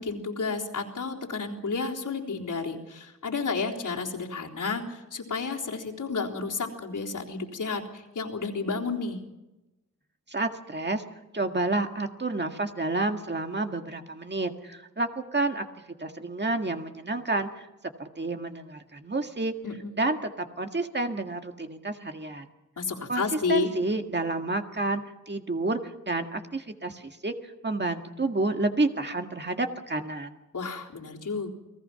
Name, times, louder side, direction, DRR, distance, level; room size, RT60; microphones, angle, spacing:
voice 1, 0.0-9.2 19.6-19.9 22.8-23.7 30.5-31.5, left 4 dB, 75° left, -1 dB, 3.8 m, -31 dB
voice 2, 10.3-11.0 11.3-15.7 16.0-17.7 18.0-19.5 20.0-20.2 20.6-22.5 23.1-23.2 23.5-25.8 26.1-27.3 27.6-30.4, right 2 dB, 35° right, 5 dB, 1.9 m, -29 dB
29.5 x 20.0 x 5.8 m, 1.0 s
wide cardioid pair, 95°, 32 cm